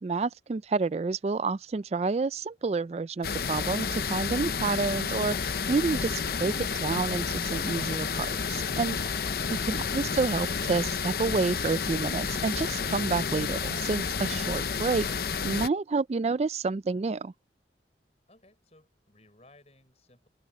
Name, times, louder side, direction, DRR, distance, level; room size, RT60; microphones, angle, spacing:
voice 1, 0.0-9.0 9.7-15.1 15.4-17.3, right 4 dB, 35° right, 0.3 m, -29 dB
sound 1, 0.7-6.7 7.2-12.5 12.8-12.9 13.2-13.4 13.6-14.2, left 2 dB, 15° left, 3.4 m, -57 dB
sound 2, 3.2-15.7, left 5 dB, 55° left, 0.7 m, -30 dB
voice 2, 18.3-20.3, left 2 dB, 35° left, 6.2 m, -59 dB
open air
head